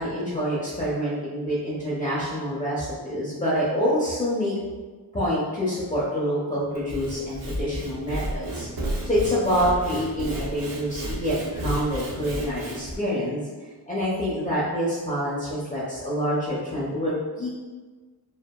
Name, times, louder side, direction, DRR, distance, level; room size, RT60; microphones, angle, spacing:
voice 1, 0.0-4.5 5.1-8.7 9.0-13.5 13.9-17.5, equal, 20° left, -8 dB, 0.5 m, -26 dB
Sawing / Wood, 6.7-13.0, right 1 dB, 60° right, 0.6 m, -32 dB
2.7 x 2.3 x 2.2 m, 1.4 s
wide cardioid pair, 140°, 40 cm